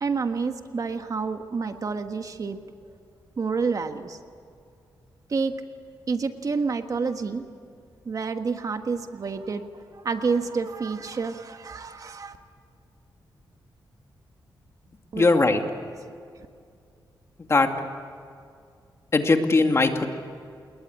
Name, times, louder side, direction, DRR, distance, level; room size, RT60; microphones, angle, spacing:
voice 1, 0.0-2.6 3.4-4.2 5.3-5.5 6.1-7.5 8.0-9.7 9.9-12.4 15.1-15.3, right 4 dB, 45° right, 7 dB, 1.5 m, -28 dB
voice 2, 15.1-15.6 17.5-17.7 19.1-20.1, left 3 dB, 35° left, 5 dB, 2.3 m, -19 dB
28.5 x 21.0 x 8.5 m, 2.3 s
wide cardioid pair, 110°, 8 cm